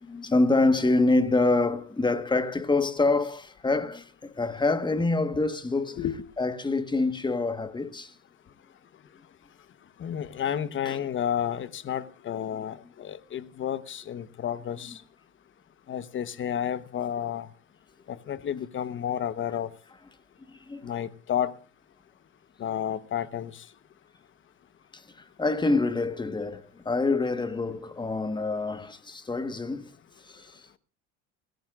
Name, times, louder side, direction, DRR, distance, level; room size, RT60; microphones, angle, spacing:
voice 1, 0.0-6.0 6.4-8.1 10.8-11.0 14.9-15.0 20.5-21.0 24.9-29.9 30.2-30.8, left 3 dB, 15° left, 1.4 m, -26 dB
voice 2, 10.0-14.9 15.9-17.5 18.1-19.7 20.8-21.5 22.6-23.5, left 9 dB, 35° left, 1.1 m, -31 dB
29.5 x 14.0 x 2.5 m
supercardioid pair, 105°, 33 cm